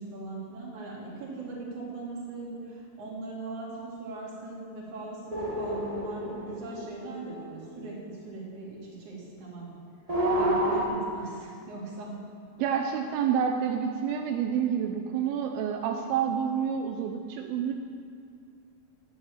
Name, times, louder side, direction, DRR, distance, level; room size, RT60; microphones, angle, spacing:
voice 1, 0.0-9.7 10.3-12.2, right 3 dB, 55° right, -5 dB, 4.2 m, -40 dB
sound 1, 5.3-7.8 10.1-10.8, right 1 dB, 25° right, 0.7 m, -29 dB
voice 2, 12.6-17.7, right 8 dB, 85° right, 3 dB, 2.6 m, -28 dB
13.0 x 9.7 x 7.3 m, 2.3 s
omnidirectional pair, 4.2 m